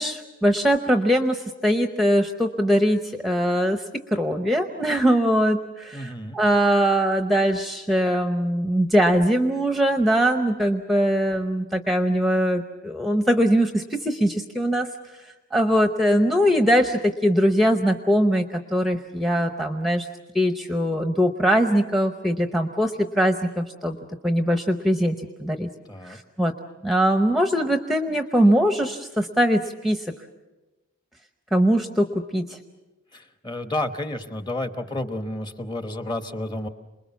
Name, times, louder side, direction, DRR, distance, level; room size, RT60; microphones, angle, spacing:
voice 1, 0.0-3.8 4.1-14.9 15.5-20.1 20.3-24.0 24.2-25.7 26.0-26.5 26.8-30.0 31.5-32.6, equal, ahead, 6 dB, 0.7 m, -21 dB
voice 2, 5.9-6.4 25.9-26.2 33.1-36.7, left 1 dB, 20° left, 8 dB, 1.1 m, -31 dB
28.0 x 21.0 x 7.2 m, 1.1 s
head